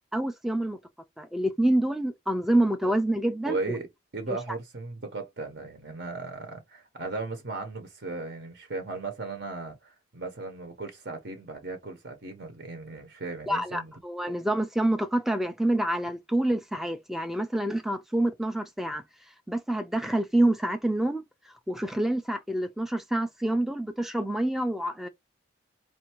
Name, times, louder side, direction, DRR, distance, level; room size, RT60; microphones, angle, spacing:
voice 1, 0.1-0.8 1.2-3.6 13.5-19.0 19.5-25.1, right 1 dB, ahead, 0.3 m, -27 dB
voice 2, 3.5-13.9, right 3 dB, 60° right, 0.9 m, -36 dB
4.3 x 2.6 x 2.9 m
head